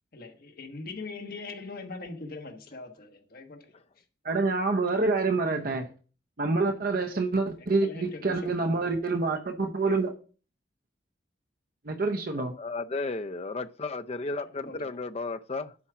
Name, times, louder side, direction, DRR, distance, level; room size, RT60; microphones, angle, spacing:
voice 1, 0.1-3.7 4.0-4.1 7.6-8.5 14.3-14.8, left 3 dB, 55° left, 1.3 m, -42 dB
voice 2, 4.2-5.9 6.4-10.1 11.8-12.5, right 3 dB, 50° right, 0.7 m, -27 dB
voice 3, 12.4-15.7, left 3 dB, 35° left, 0.5 m, -34 dB
7.2 x 4.8 x 5.8 m
head